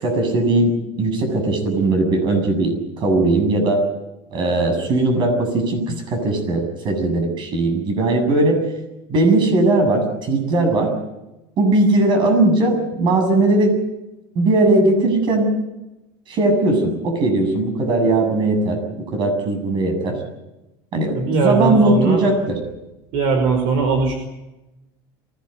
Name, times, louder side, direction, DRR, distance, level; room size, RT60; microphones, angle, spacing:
voice 1, 0.0-3.8 4.3-8.6 9.1-10.9 11.6-13.8 14.4-15.5 16.3-20.2 20.9-22.6, right 2 dB, 40° right, 6 dB, 7.6 m, -18 dB
voice 2, 21.2-22.2 23.1-24.1, right 4 dB, 60° right, 5 dB, 5.1 m, -19 dB
23.5 x 18.0 x 9.3 m, 0.98 s
supercardioid pair, 135°, 12 cm